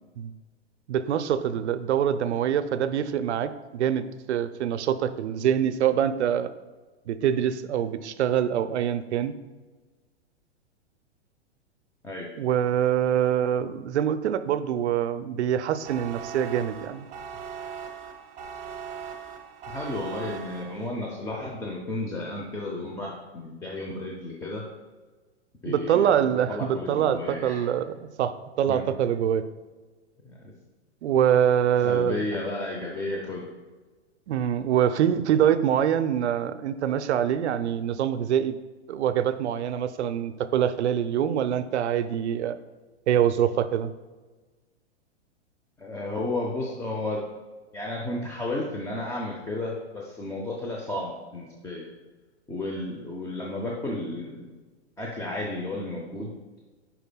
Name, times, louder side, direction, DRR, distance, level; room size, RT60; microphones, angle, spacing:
voice 1, 0.9-6.5 7.1-9.3 12.4-17.1 25.7-29.4 31.0-32.2 34.3-38.6 38.9-42.5 43.1-43.9, right 9 dB, 75° right, 12 dB, 0.6 m, -25 dB
sound 1, 15.8-21.1, right 7 dB, 20° right, 0.9 m, -39 dB
voice 2, 19.7-24.7 25.6-26.1 26.5-27.6 28.7-28.8 30.2-30.5 31.8-33.5 45.8-47.3 47.7-51.9 52.5-54.5 55.0-56.3, left 2 dB, 10° left, -2 dB, 0.6 m, -33 dB
10.5 x 4.4 x 2.3 m, 1.3 s
hypercardioid pair, 115°, 34 cm